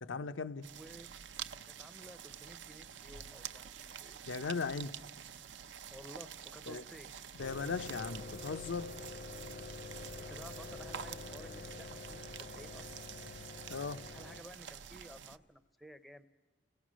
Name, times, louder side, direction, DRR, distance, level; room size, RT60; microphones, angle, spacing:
voice 1, 0.0-0.7 4.3-5.0 6.7-6.8 7.4-9.0 13.7-14.0, left 4 dB, 90° left, 0.6 m, -38 dB
sound 1, 0.6-15.4, right 8 dB, 70° right, 0.6 m, -48 dB
voice 2, 0.7-1.1 1.6-4.3 5.9-7.1 9.9-12.8 14.1-16.2, equal, ahead, 0.6 m, -54 dB
sound 2, 7.4-14.4, left 4 dB, 50° left, 0.6 m, -47 dB
29.0 x 17.5 x 6.2 m
head